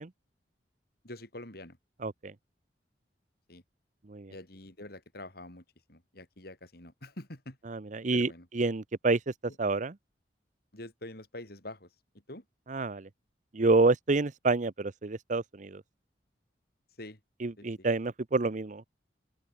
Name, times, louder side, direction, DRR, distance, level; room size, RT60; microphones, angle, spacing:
voice 1, 1.0-1.8 3.5-3.6 4.3-7.6 8.1-8.5 9.5-9.6 10.7-12.5 17.0-17.2 17.6-17.9, left 1 dB, 55° left, 5.4 m, -46 dB
voice 2, 2.0-2.3 4.1-4.3 7.7-9.3 9.6-9.9 12.7-13.1 13.5-15.8 17.4-18.9, right 3 dB, 45° right, 0.7 m, -28 dB
open air
head